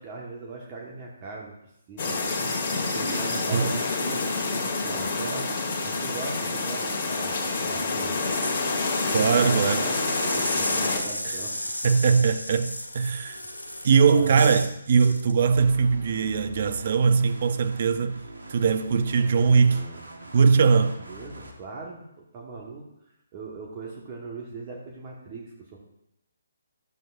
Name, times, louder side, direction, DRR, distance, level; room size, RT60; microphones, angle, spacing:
voice 1, 0.0-1.5 1.9-2.3 2.6-5.5 5.8-8.3 9.1-11.5 13.4-14.5 19.7-20.0 20.6-22.8 23.3-25.8, right 4 dB, 30° right, 1.5 m, -40 dB
sound 1, 2.0-11.0, left 3 dB, 35° left, 1.6 m, -28 dB
sound 2, 8.1-14.7 15.0-15.3, left 1 dB, 85° left, 1.6 m, -34 dB
voice 2, 9.1-9.8 11.8-13.4 13.8-18.2 18.5-19.8 20.3-20.9, right 5 dB, 45° right, 0.6 m, -21 dB
sound 3, 15.4-21.5, right 1 dB, 70° right, 1.4 m, -43 dB
12.0 x 7.5 x 2.6 m
figure-of-eight pair, 140°, 0 cm